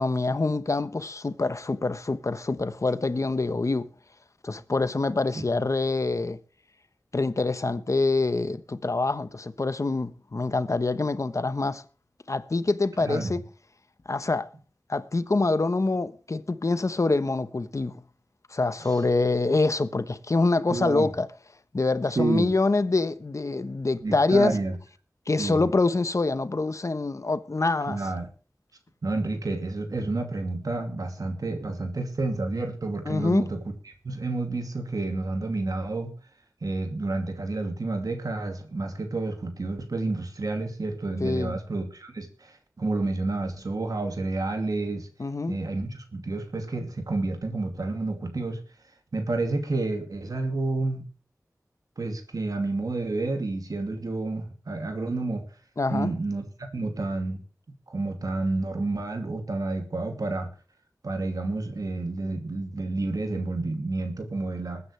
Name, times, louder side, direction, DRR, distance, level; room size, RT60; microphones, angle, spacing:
voice 1, 0.0-3.9 4.4-6.4 7.1-11.8 12.3-13.5 14.1-14.5 14.9-18.0 18.5-21.3 21.7-24.5 25.3-28.0 33.0-33.5 41.2-41.5 45.2-45.6 55.8-56.1, left 3 dB, 55° left, 1.1 m, -25 dB
voice 2, 13.0-13.3 18.8-19.0 20.7-21.1 22.1-22.5 24.0-24.8 25.4-25.7 27.9-28.3 29.0-33.6 34.0-36.1 36.6-45.1 45.5-48.6 49.1-51.0 52.0-55.4 55.9-56.4 56.7-57.4 57.9-60.5 61.0-64.8, right 2 dB, 85° right, 2.6 m, -29 dB
21.0 x 9.8 x 3.3 m
wide cardioid pair, 60°, 6 cm